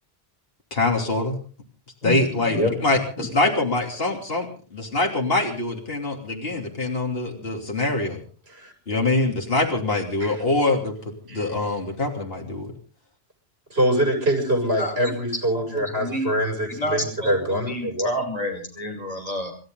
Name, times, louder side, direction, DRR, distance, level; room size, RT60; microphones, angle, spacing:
voice 1, 0.7-1.4 2.0-8.2 8.9-10.9 11.3-12.7, left 2 dB, 70° left, 1 dB, 3.3 m, -24 dB
voice 2, 2.0-2.7 3.2-3.3 14.8-15.1 15.5-16.3 16.7-19.5, equal, 40° left, 2 dB, 5.9 m, -29 dB
voice 3, 13.7-18.1, right 1 dB, 80° right, 2 dB, 6.7 m, -24 dB
28.0 x 13.0 x 3.9 m, 0.40 s
omnidirectional pair, 1.0 m